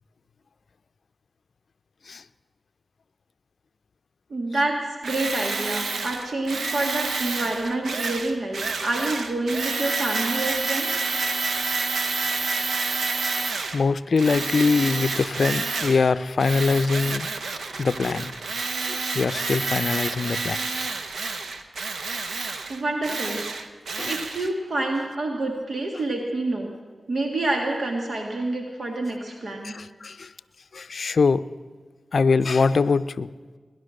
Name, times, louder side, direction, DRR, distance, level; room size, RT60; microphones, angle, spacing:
voice 1, 4.3-11.1 22.7-23.7 24.1-26.7 27.1-29.8, right 2 dB, 65° right, 2 dB, 1.9 m, -28 dB
Tools, 5.0-13.8 14.2-16.1 16.4-24.5, right 3 dB, 80° right, 1.1 m, -29 dB
voice 2, 13.7-17.3 17.8-18.3 18.9-20.6 24.0-24.1 29.6-30.3 30.7-31.4 32.1-33.3, left 4 dB, 65° left, 14 dB, 0.5 m, -23 dB
20.5 x 11.0 x 6.4 m, 1.4 s
cardioid pair, 45°, 0 cm